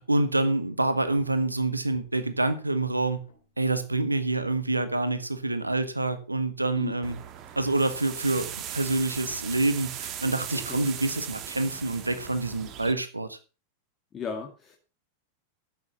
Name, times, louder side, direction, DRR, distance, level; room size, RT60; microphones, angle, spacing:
voice 1, 0.0-3.2 3.6-7.2 7.6-13.4, right 2 dB, 85° right, 1.4 m, -27 dB
sound 1, 1.9-4.0 4.4-5.2 5.6-6.5 6.8-8.1 8.4-10.9, left 3 dB, 70° left, 4.0 m, -53 dB
sound 2, 7.0-12.9, right 10 dB, 35° right, 1.8 m, -38 dB
voice 2, 14.1-14.8, left 6 dB, 25° left, 2.2 m, -36 dB
12.0 x 8.6 x 6.0 m
figure-of-eight pair, 90°, 0 cm